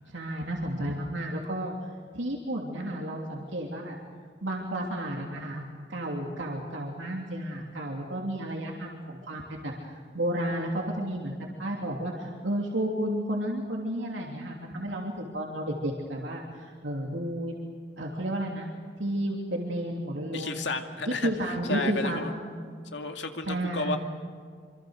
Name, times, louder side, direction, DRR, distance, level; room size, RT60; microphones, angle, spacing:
voice 1, 0.1-1.7 2.1-3.9 4.4-5.6 5.9-17.6 18.0-18.7 19.0-20.7 21.0-22.6 23.5-24.0, right 1 dB, 75° right, 0 dB, 3.0 m, -32 dB
voice 2, 20.3-22.3 22.9-24.0, left 3 dB, 70° left, 5 dB, 2.2 m, -32 dB
26.0 x 25.5 x 6.6 m, 2.1 s
head